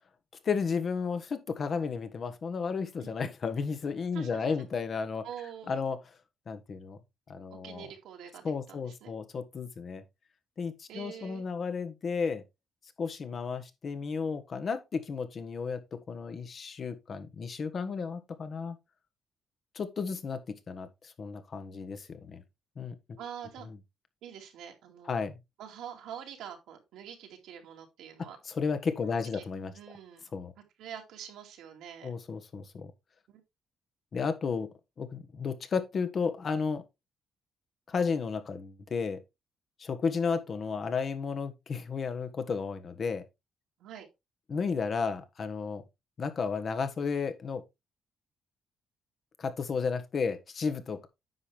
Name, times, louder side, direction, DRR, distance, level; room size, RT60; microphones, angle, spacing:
voice 1, 0.4-5.2 5.7-6.0 6.5-7.0 7.3-7.9 8.4-10.0 10.6-12.4 13.0-18.8 19.7-22.4 22.8-23.2 25.1-25.4 28.5-29.7 30.3-30.5 32.0-32.9 34.1-34.7 35.0-36.8 37.9-39.2 39.8-43.2 44.5-45.8 46.2-47.6 49.4-51.1, left 5 dB, 50° left, 1.4 m, -33 dB
voice 2, 4.1-4.7 5.2-5.9 7.5-9.1 10.9-11.4 23.2-23.7 24.2-25.2 25.6-28.4 29.0-29.4 29.7-30.3 30.8-32.1 33.3-33.4 43.8-44.1, right 9 dB, 90° right, 2.4 m, -45 dB
9.6 x 6.0 x 3.5 m
cardioid pair, 90°, 0 cm